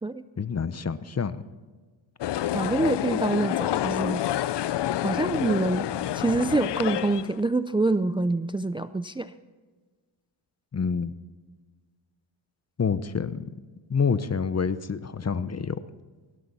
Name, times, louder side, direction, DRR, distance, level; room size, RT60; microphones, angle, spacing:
voice 1, 0.4-1.4 10.7-11.1 12.8-13.5 13.9-15.8, left 6 dB, 35° left, 14 dB, 0.8 m, -27 dB
sound 1, 2.2-7.4, left 12 dB, 65° left, 0.6 m, -28 dB
voice 2, 2.5-4.3 5.0-5.9 6.1-9.3, right 2 dB, 10° right, 12 dB, 0.4 m, -26 dB
19.0 x 16.0 x 4.2 m, 1.4 s
cardioid pair, 85°, 46 cm